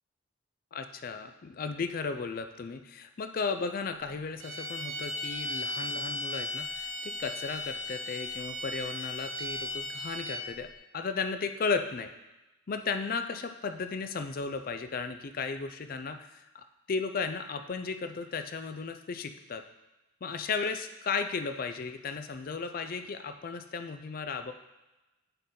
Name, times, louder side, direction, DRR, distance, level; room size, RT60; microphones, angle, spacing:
voice 1, 0.7-12.1 12.7-19.6 20.2-24.5, left 5 dB, 45° left, 8 dB, 0.4 m, -35 dB
sound 1, 4.4-10.6, left 1 dB, 85° right, 0.9 m, -36 dB
9.0 x 3.8 x 4.2 m, 1.0 s
head